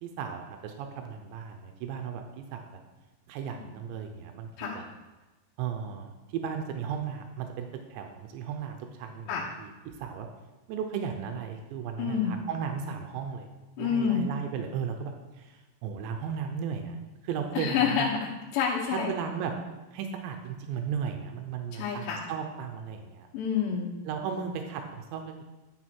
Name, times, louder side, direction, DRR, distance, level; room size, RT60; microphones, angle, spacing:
voice 1, 0.0-2.6 3.3-4.8 5.6-10.3 10.7-13.5 13.8-18.1 18.9-19.5 19.9-23.3 24.0-25.4, right 7 dB, 90° right, 5 dB, 3.0 m, -35 dB
voice 2, 12.0-12.4 13.8-14.3 17.5-19.1 21.7-22.3 23.3-23.9, left 7 dB, 85° left, -4 dB, 3.1 m, -28 dB
10.5 x 6.6 x 4.5 m, 1.1 s
omnidirectional pair, 5.0 m